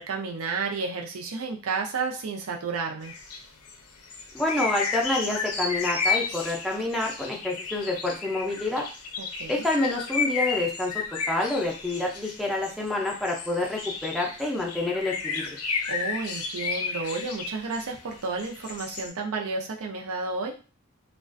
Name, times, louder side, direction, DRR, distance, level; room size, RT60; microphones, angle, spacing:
voice 1, 0.0-3.1 9.2-9.7 15.9-20.5, right 4 dB, 75° right, 1 dB, 0.5 m, -31 dB
sound 1, 3.0-3.4 3.7-3.8 4.0-17.9 18.4-19.1, left 5 dB, 80° left, 0.5 m, -32 dB
voice 2, 4.3-8.8 9.5-10.9 11.3-15.4, left 2 dB, ahead, -1 dB, 0.4 m, -28 dB
2.3 x 2.2 x 2.5 m, 0.35 s
head